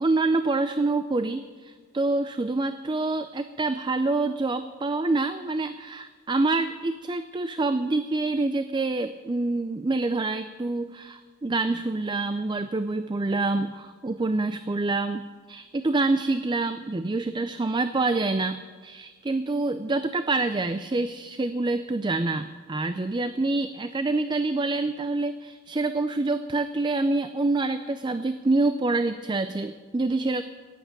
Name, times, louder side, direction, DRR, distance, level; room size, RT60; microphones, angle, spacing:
voice 1, 0.0-30.4, right 2 dB, 20° right, 11 dB, 0.4 m, -26 dB
16.0 x 8.5 x 10.0 m, 1.5 s
head